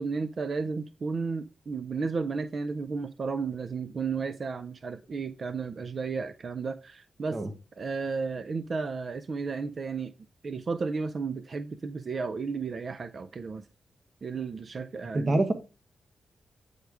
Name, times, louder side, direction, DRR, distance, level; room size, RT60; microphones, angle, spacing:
voice 1, 0.0-7.4 7.8-10.1 10.4-13.7 14.2-15.4, right 4 dB, 55° right, 0.4 m, -33 dB
voice 2, 15.1-15.5, right 2 dB, 40° right, 0.8 m, -25 dB
9.3 x 3.5 x 4.7 m
cardioid pair, 70°, 0 cm